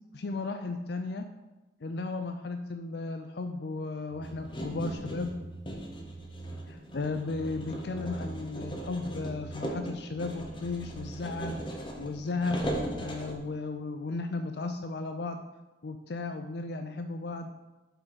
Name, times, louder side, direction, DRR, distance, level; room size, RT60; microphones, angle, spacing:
voice 1, 0.1-1.2 1.8-5.3 6.7-11.6 12.0-15.4 15.8-17.5, left 3 dB, 65° left, 7 dB, 0.5 m, -35 dB
sound 1, 4.1-11.7, right 2 dB, 40° right, 0.6 m, -46 dB
sound 2, 4.2-13.4, equal, 25° left, 1.1 m, -38 dB
7.5 x 5.6 x 5.8 m, 1.1 s
head